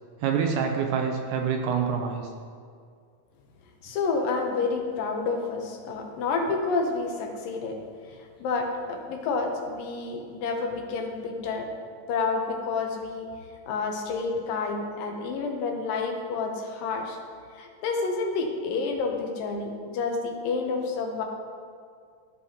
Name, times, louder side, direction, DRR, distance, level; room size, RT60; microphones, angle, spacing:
voice 1, 0.2-2.3, right 6 dB, 80° right, 3 dB, 2.0 m, -26 dB
voice 2, 3.8-7.8 8.1-11.7 12.1-13.3 13.7-17.2 17.6-21.2, left 4 dB, 85° left, 3 dB, 2.6 m, -29 dB
14.0 x 5.6 x 2.9 m, 2.2 s
omnidirectional pair, 3.9 m